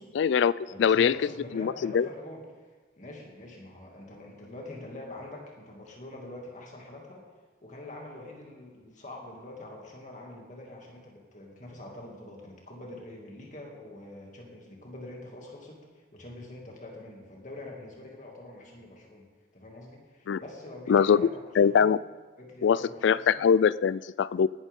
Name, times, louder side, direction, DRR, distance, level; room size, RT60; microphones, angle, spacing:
voice 1, 0.2-0.5 0.8-1.2 1.5-2.1 20.3-20.4 20.9-21.3 21.6-22.0 22.6-24.5, left 7 dB, 70° left, 19 dB, 0.3 m, -22 dB
voice 2, 0.7-2.5 3.0-7.3 7.6-19.3 19.5-21.3 21.6-21.9 22.4-23.4, left 1 dB, 40° left, -1 dB, 2.5 m, -45 dB
19.0 x 11.5 x 3.7 m, 1.3 s
head